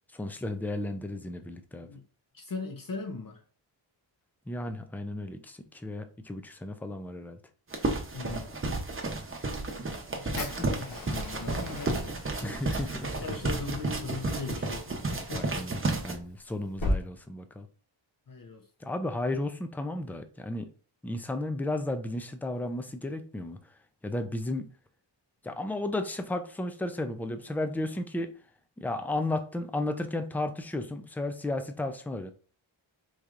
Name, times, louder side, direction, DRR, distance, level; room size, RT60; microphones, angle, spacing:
voice 1, 0.1-1.9 4.5-7.4 12.4-13.1 15.3-17.7 18.8-20.7 21.0-23.6 24.0-24.7 25.4-28.3 28.8-32.3, left 2 dB, 5° left, 0.3 m, -34 dB
voice 2, 2.3-3.4 8.1-8.6 10.2-12.2 12.4-12.6 13.2-15.7 18.3-18.7, left 4 dB, 45° left, 0.7 m, -39 dB
sound 1, 7.7-16.1, right 2 dB, 25° right, 0.8 m, -32 dB
Fire, 10.4-17.0, left 1 dB, 80° left, 1.7 m, -38 dB
4.7 x 2.8 x 2.4 m
wide cardioid pair, 110°, 47 cm